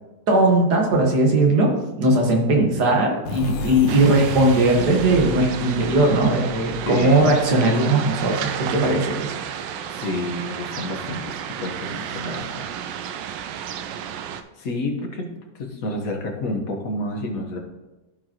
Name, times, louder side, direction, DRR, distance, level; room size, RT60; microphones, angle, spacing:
voice 1, 0.3-1.7 2.0-9.3, right 1 dB, 65° right, 1 dB, 2.0 m, -18 dB
sound 1, 3.2-8.8, left 2 dB, 85° left, 1.6 m, -35 dB
sound 2, 3.9-14.4, right 9 dB, 90° right, 1.3 m, -32 dB
voice 2, 6.8-7.3 9.9-11.3 11.6-12.7 14.6-15.3 15.6-17.6, left 1 dB, 55° left, 2 dB, 1.6 m, -29 dB
14.0 x 4.8 x 3.0 m, 1.1 s
omnidirectional pair, 1.9 m